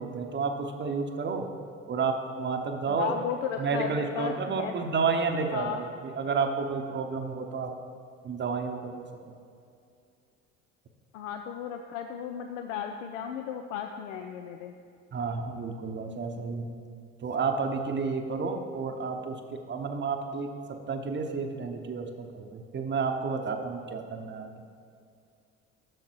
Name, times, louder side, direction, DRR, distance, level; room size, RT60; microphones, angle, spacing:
voice 1, 0.0-1.5 1.9-3.1 3.6-7.7 8.2-9.0 15.1-16.7 17.2-20.5 20.9-24.5, right 5 dB, 30° right, 5 dB, 0.8 m, -31 dB
voice 2, 2.9-4.7 5.5-5.8 11.1-14.7, left 8 dB, 75° left, 5 dB, 0.5 m, -35 dB
7.7 x 6.5 x 4.5 m, 2.4 s
figure-of-eight pair, 60°, 38 cm